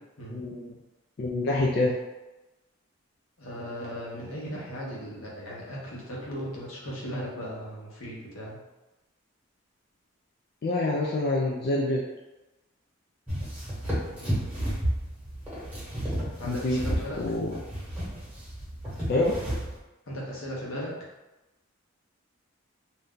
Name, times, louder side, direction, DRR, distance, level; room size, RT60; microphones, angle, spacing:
voice 1, 0.3-0.7 1.2-1.9 10.6-12.0 16.4-16.8 17.2-17.6 19.1-19.4, left 2 dB, 50° left, -3 dB, 0.3 m, -26 dB
voice 2, 3.4-8.6 14.1-14.5 16.4-17.2 20.1-20.9, equal, 80° left, -4 dB, 0.9 m, -37 dB
sound 1, 13.3-19.8, equal, 5° right, 1.1 m, -32 dB
2.6 x 2.2 x 3.6 m, 1.0 s
head